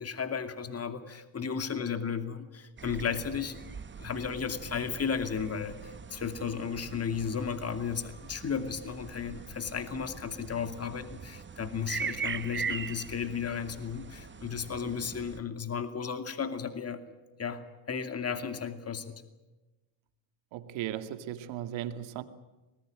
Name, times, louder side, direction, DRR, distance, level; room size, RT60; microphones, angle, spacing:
voice 1, 0.0-3.6 4.0-17.0 17.4-19.1, left 6 dB, 30° left, 2.5 m, -34 dB
sound 1, 2.8-15.4, right 6 dB, 25° right, 1.2 m, -41 dB
voice 2, 20.5-22.2, right 11 dB, 80° right, 2.3 m, -36 dB
26.5 x 20.0 x 9.0 m
cardioid pair, 100°, 45 cm